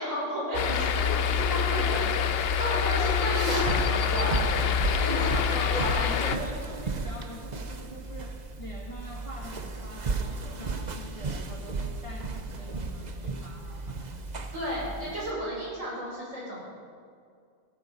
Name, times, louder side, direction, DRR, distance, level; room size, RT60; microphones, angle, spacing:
voice 1, 0.0-1.0 1.4-4.7 5.0-6.3 14.5-16.6, equal, 70° right, -5 dB, 5.9 m, -32 dB
sound 1, 0.5-6.4, left 8 dB, 55° left, 0.8 m, -26 dB
sound 2, 0.6-15.3, right 3 dB, 35° right, 0.9 m, -35 dB
voice 2, 4.9-14.4 15.6-15.7, equal, 25° left, -1 dB, 1.9 m, -43 dB
16.5 x 14.5 x 5.3 m, 2.2 s
omnidirectional pair, 1.4 m